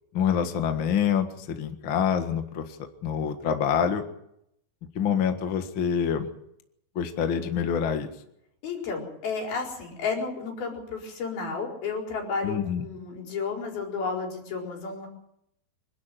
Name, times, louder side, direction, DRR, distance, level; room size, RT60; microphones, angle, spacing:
voice 1, 0.1-4.0 5.0-6.3 7.0-8.1 12.4-12.8, left 8 dB, 45° left, 6 dB, 2.0 m, -26 dB
voice 2, 8.6-15.1, left 4 dB, 85° left, 0 dB, 6.4 m, -32 dB
26.0 x 12.0 x 9.2 m, 0.77 s
omnidirectional pair, 4.2 m